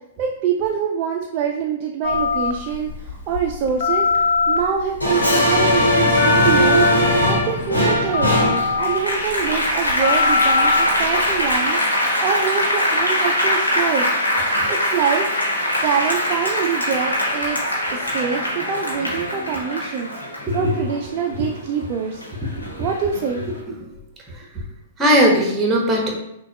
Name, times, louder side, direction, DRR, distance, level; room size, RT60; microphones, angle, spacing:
voice 1, 0.2-14.1 14.7-15.3 15.8-17.6 17.9-22.2 22.8-23.4, right 7 dB, 35° right, 1 dB, 0.3 m, -25 dB
Telephone, 2.0-11.6, left 4 dB, 55° left, 0.5 m, -23 dB
Applause, 5.0-21.8 22.2-23.4, left 1 dB, 75° left, 1.1 m, -21 dB
voice 2, 20.5-20.9 23.4-23.9 25.0-26.2, equal, 15° right, 0 dB, 0.9 m, -19 dB
5.9 x 2.2 x 2.3 m, 0.82 s
figure-of-eight pair, 105°, 0 cm